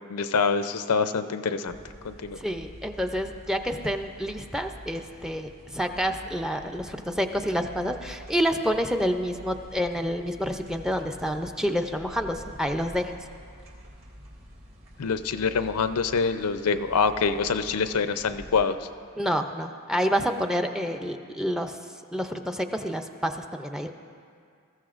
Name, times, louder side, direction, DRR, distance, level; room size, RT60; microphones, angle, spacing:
voice 1, 0.1-1.8 2.0-2.4 15.0-18.9, left 5 dB, 85° left, 10 dB, 0.6 m, -25 dB
sound 1, 1.6-18.7, equal, 60° right, 2.3 m, -47 dB
voice 2, 2.4-13.1 19.2-21.8 22.1-23.9, equal, ahead, 5 dB, 0.5 m, -28 dB
21.0 x 14.0 x 2.5 m, 2.3 s
head